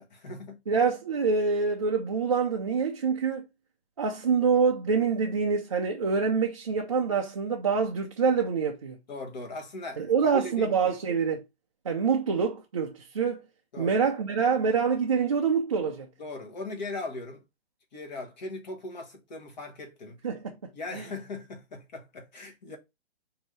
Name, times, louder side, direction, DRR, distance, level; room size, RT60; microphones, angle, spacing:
voice 1, 0.0-0.6 9.1-10.9 13.7-14.0 16.2-17.4 17.9-20.2 20.7-22.8, left 2 dB, 40° left, 1.3 m, -39 dB
voice 2, 0.7-3.5 4.0-9.0 10.0-11.4 11.9-13.4 13.8-16.1 20.2-20.5, right 5 dB, 30° right, 0.4 m, -26 dB
5.1 x 2.7 x 3.1 m
hypercardioid pair, 165°, 32 cm